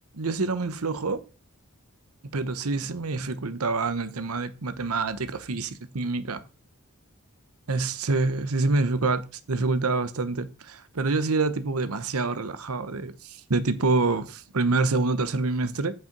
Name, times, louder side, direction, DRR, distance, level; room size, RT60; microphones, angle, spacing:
voice 1, 0.2-1.2 2.3-6.4 7.7-9.2 9.5-15.9, right 3 dB, 80° right, 0.9 m, -26 dB
8.2 x 5.8 x 5.3 m
head